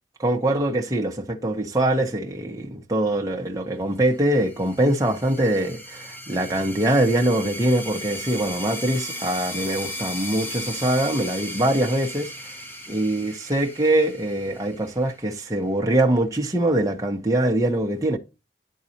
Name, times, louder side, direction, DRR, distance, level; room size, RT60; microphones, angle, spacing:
voice 1, 0.2-12.3 12.9-18.2, right 1 dB, 20° right, 0.9 m, -23 dB
sound 1, 4.1-15.4, equal, 10° left, 1.1 m, -36 dB
11.0 x 4.1 x 2.8 m
head